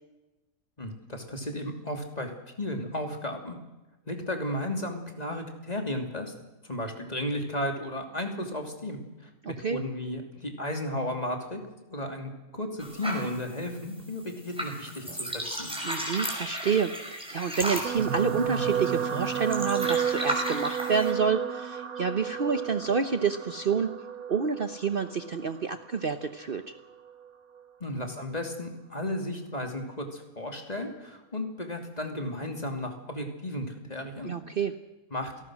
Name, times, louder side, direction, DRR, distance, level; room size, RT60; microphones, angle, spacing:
voice 1, 0.8-2.3 2.6-3.6 4.1-6.3 6.6-9.0 9.5-11.6 11.9-15.7 27.8-34.3 35.1-35.3, left 1 dB, 25° left, 4 dB, 2.9 m, -34 dB
voice 2, 9.4-9.8 15.8-16.9 17.3-23.9 24.3-26.7 34.2-34.7, right 6 dB, 45° right, 9 dB, 1.0 m, -28 dB
sound 1, 12.8-21.1, equal, 5° right, 5.3 m, -35 dB
sound 2, 17.8-26.3 27.1-27.3 27.6-27.7, right 8 dB, 80° right, 1.7 m, -32 dB
27.5 x 18.5 x 6.3 m, 1.1 s
omnidirectional pair, 1.5 m